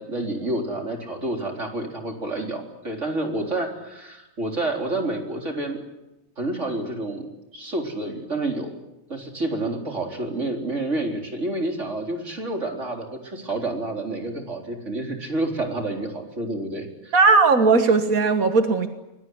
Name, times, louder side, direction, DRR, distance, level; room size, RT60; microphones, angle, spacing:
voice 1, 0.0-5.8 6.4-7.3 7.5-8.7 9.1-17.1, right 2 dB, 55° right, 2 dB, 4.3 m, -29 dB
voice 2, 17.1-18.9, right 4 dB, 80° right, 7 dB, 1.9 m, -17 dB
25.0 x 22.0 x 9.5 m, 0.94 s
omnidirectional pair, 1.5 m